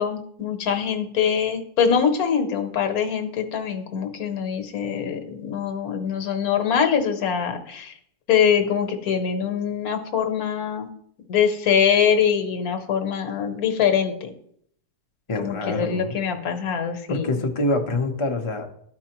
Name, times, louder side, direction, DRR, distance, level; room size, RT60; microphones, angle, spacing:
voice 1, 0.0-7.9 8.3-10.9 11.3-14.3 15.4-17.4, left 7 dB, 70° left, 6 dB, 1.3 m, -23 dB
voice 2, 15.3-16.2 17.1-18.7, left 2 dB, 35° left, 3 dB, 0.5 m, -26 dB
12.5 x 4.7 x 2.9 m, 0.69 s
omnidirectional pair, 1.6 m